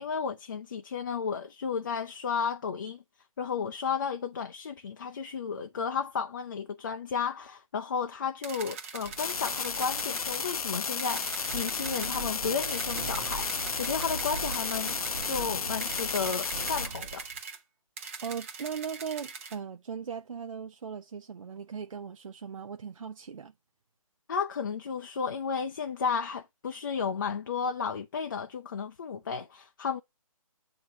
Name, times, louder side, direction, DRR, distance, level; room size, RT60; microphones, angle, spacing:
voice 1, 0.0-3.0 3.4-13.5 13.8-15.0 15.2-17.3 24.3-30.0, left 6 dB, 35° left, 0.5 m, -33 dB
sound 1, 8.4-10.6 11.0-12.2 12.6-15.4 15.8-17.6 18.0-19.6, right 5 dB, 20° right, 0.9 m, -42 dB
sound 2, 9.0-17.4, right 5 dB, 45° right, 1.4 m, -42 dB
sound 3, 9.2-16.9, left 6 dB, 85° left, 0.6 m, -33 dB
voice 2, 18.2-23.5, right 7 dB, 60° right, 0.6 m, -38 dB
8.2 x 2.9 x 5.5 m
hypercardioid pair, 165°, 18 cm